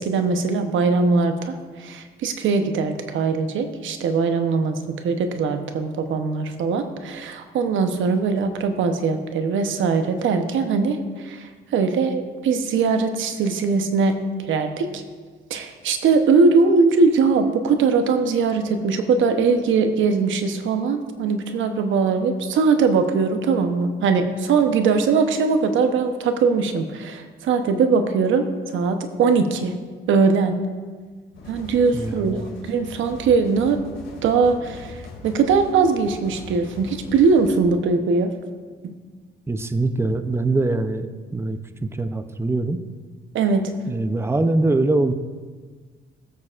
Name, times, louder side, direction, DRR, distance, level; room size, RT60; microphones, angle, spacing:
voice 1, 0.0-14.1 14.5-15.0 15.5-29.7 30.1-30.5 31.5-33.8 34.2-38.3 38.8-38.9 43.3-43.6, right 4 dB, 75° right, 7 dB, 0.9 m, -21 dB
sound 1, 31.3-37.7, left 2 dB, 75° left, 2.4 m, -40 dB
voice 2, 31.9-32.6 39.5-42.8 43.9-45.1, right 2 dB, 10° right, 9 dB, 0.6 m, -23 dB
19.5 x 6.6 x 2.5 m, 1.5 s
cardioid pair, 90°, 20 cm